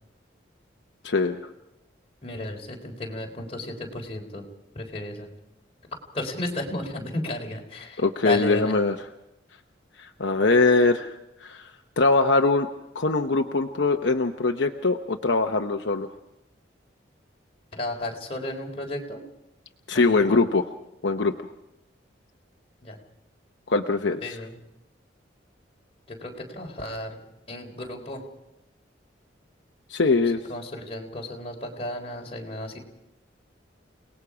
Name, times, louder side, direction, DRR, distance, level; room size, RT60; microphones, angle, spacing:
voice 1, 1.0-1.4 8.0-9.0 10.0-11.1 11.4-12.7 12.9-16.1 19.9-20.6 21.0-21.3 23.7-24.4 29.9-30.4, left 3 dB, 75° left, 4 dB, 0.9 m, -22 dB
voice 2, 2.2-4.4 4.7-5.3 6.1-8.8 17.7-19.2 19.9-20.4 22.8-23.0 24.2-24.6 26.1-27.2 27.5-28.2 30.5-32.8, left 1 dB, 30° left, 0 dB, 3.8 m, -33 dB
29.5 x 19.0 x 5.0 m, 0.90 s
head